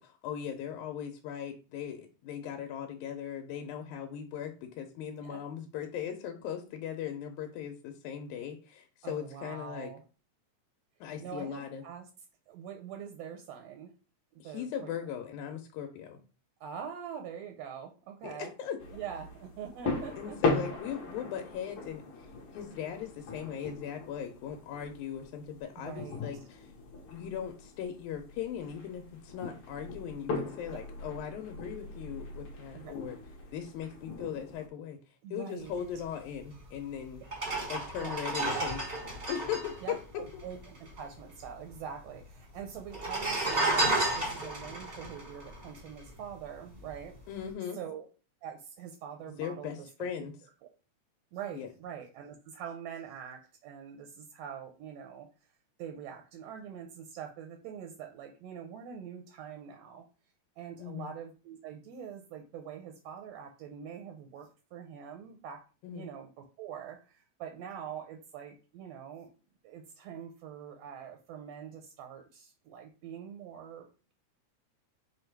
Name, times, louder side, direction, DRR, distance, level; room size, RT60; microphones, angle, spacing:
voice 1, 0.0-9.9 11.0-11.8 14.4-16.2 18.2-19.0 20.2-22.0 22.5-26.7 27.1-33.2 33.5-35.0 35.3-37.2 37.7-38.9 39.3-40.2 47.3-47.8 49.4-50.3 51.5-51.7 60.8-61.1 65.8-66.1, left 9 dB, 85° left, 4 dB, 2.0 m, -39 dB
voice 2, 9.0-10.0 11.2-12.1 12.5-13.9 14.4-14.9 16.6-18.5 18.9-20.6 25.8-26.2 30.7-30.8 32.7-33.0 35.2-35.8 38.0-38.2 39.8-47.1 47.7-48.1 48.4-49.7 50.2-50.3 51.3-55.3 55.8-60.0 60.6-65.6 65.9-69.3 69.6-73.9, right 8 dB, 80° right, 4 dB, 1.6 m, -44 dB
sound 1, 18.8-34.7, left 3 dB, 60° left, 1.5 m, -39 dB
sound 2, 36.6-36.7 37.2-40.9 41.2-41.3 41.5-42.2 42.8-46.3 46.8-47.0, right 2 dB, 40° right, 0.8 m, -32 dB
5.1 x 2.3 x 4.5 m, 0.35 s
omnidirectional pair, 3.4 m